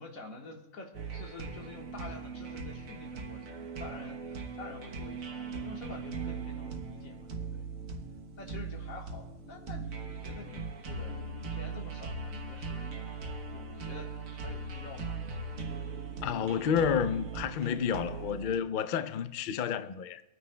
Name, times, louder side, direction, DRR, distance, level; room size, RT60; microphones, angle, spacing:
voice 1, 0.0-7.7 8.4-11.2 11.5-15.3, left 3 dB, 85° left, 1.9 m, -48 dB
sound 1, 0.9-18.6, right 4 dB, 80° right, 1.5 m, -39 dB
voice 2, 16.2-20.2, left 7 dB, 60° left, 0.5 m, -30 dB
24.5 x 9.6 x 2.2 m
omnidirectional pair, 1.4 m